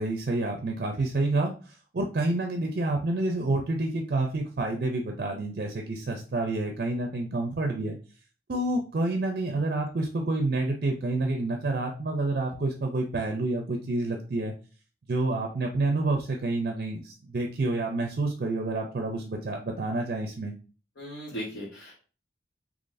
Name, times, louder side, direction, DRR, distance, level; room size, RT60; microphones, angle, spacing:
voice 1, 0.0-8.0 8.5-14.5 15.1-20.5, right 2 dB, 55° right, 3 dB, 0.4 m, -28 dB
voice 2, 21.0-22.0, equal, 90° left, -6 dB, 1.2 m, -37 dB
3.9 x 2.9 x 2.5 m, 0.37 s
head